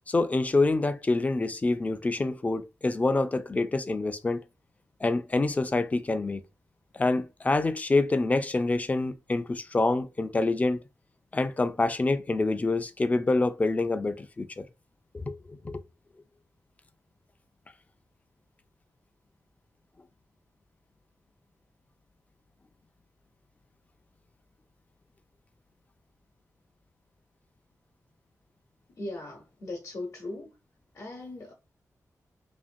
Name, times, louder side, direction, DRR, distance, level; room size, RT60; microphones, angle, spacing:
voice 1, 0.1-4.4 5.0-6.4 6.9-10.8 11.3-14.7 15.1-15.8, left 2 dB, 25° left, 0.3 m, -26 dB
voice 2, 28.9-30.6 30.9-31.5, left 2 dB, 65° left, 0.8 m, -39 dB
2.8 x 2.5 x 2.5 m
wide cardioid pair, 105°, 6 cm